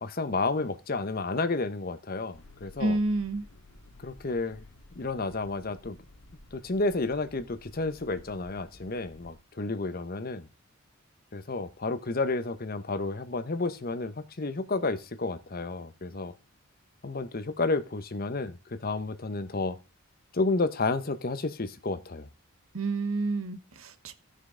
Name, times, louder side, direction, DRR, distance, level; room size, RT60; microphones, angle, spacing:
voice 1, 0.0-3.0 4.0-4.6 5.0-6.0 6.5-10.5 11.3-16.3 17.0-19.8 20.3-22.3, left 3 dB, 45° left, 0.8 m, -31 dB
sound 1, 2.3-9.3, left 2 dB, 75° left, 2.2 m, -53 dB
voice 2, 2.8-3.4 22.7-24.1, right 2 dB, 70° right, 1.0 m, -29 dB
16.0 x 6.5 x 3.8 m
head